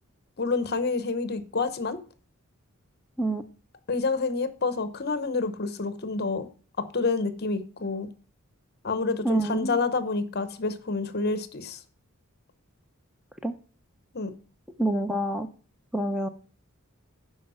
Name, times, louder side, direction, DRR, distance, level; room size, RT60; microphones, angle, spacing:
voice 1, 0.4-2.0 3.9-6.5 6.8-8.1 8.8-11.8 14.1-14.3, left 3 dB, 50° left, 0.8 m, -28 dB
voice 2, 9.2-9.8 13.4-13.5 14.8-15.5 15.9-16.3, right 1 dB, 5° right, 0.5 m, -27 dB
11.0 x 4.8 x 5.5 m
head